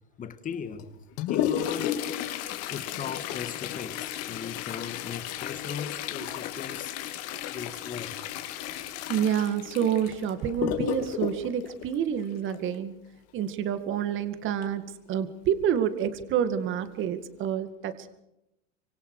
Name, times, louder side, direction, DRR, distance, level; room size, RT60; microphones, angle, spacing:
voice 1, 0.2-0.9 1.3-2.0 2.7-7.0 7.5-8.2, left 7 dB, 20° left, 2.0 m, -37 dB
Toilet flush, 0.8-12.7 14.6-14.7 15.1-15.2 15.9-16.0 16.7-16.9 17.4-17.5, left 11 dB, 40° left, 2.8 m, -33 dB
voice 2, 9.1-12.9 13.3-18.2, right 9 dB, 30° right, 2.2 m, -28 dB
25.5 x 25.0 x 4.9 m
supercardioid pair, 140°, 38 cm